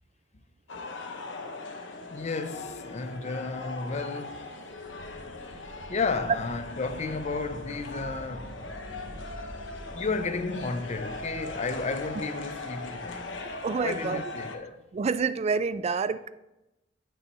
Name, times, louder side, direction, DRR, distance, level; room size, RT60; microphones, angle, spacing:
sound 1, 0.7-14.6, left 2 dB, 85° left, 0.9 m, -40 dB
voice 1, 2.1-4.5 5.4-5.6 5.9-8.6 9.9-13.4 13.8-14.8, left 4 dB, 40° left, 0.5 m, -33 dB
sound 2, 4.7-14.2, equal, 70° right, 1.4 m, -47 dB
voice 2, 13.6-14.2 14.9-16.3, right 5 dB, 35° right, 0.3 m, -28 dB
8.0 x 6.2 x 4.1 m
head